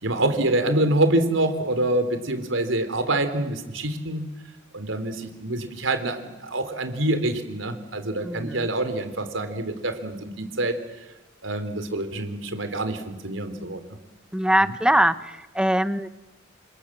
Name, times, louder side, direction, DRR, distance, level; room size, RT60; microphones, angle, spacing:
voice 1, 0.0-4.2 4.7-11.0 11.4-13.9 14.6-14.7, right 1 dB, 80° right, 9 dB, 3.6 m, -26 dB
voice 2, 8.2-8.7 14.3-16.1, right 1 dB, 5° right, 13 dB, 1.0 m, -22 dB
29.0 x 27.0 x 7.4 m, 1.1 s
head